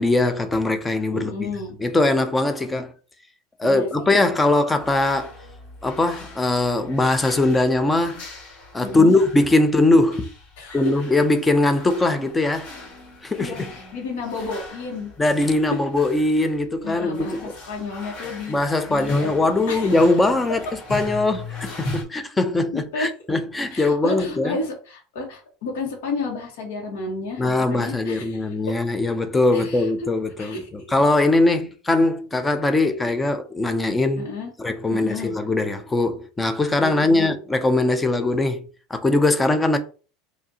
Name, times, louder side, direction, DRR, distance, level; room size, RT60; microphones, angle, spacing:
voice 1, 0.0-1.5 1.8-2.9 3.6-5.3 5.8-8.3 8.7-10.3 10.7-12.7 13.2-13.7 15.2-17.5 18.5-20.6 20.9-24.6 27.4-34.3 34.6-38.7 38.9-39.8, left 2 dB, 10° left, 0.4 m, -21 dB
voice 2, 1.1-1.8 3.6-4.1 8.8-9.2 10.6-10.8 13.4-15.1 16.8-18.6 18.9-19.3 19.7-19.9 22.7-23.1 23.7-28.4 29.5-29.9 30.4-30.7 34.2-34.5 34.9-35.4 36.8-37.4, left 3 dB, 80° left, 1.3 m, -31 dB
sound 1, 4.8-22.0, left 2 dB, 55° left, 1.9 m, -38 dB
4.9 x 2.5 x 2.8 m
supercardioid pair, 175°, 0 cm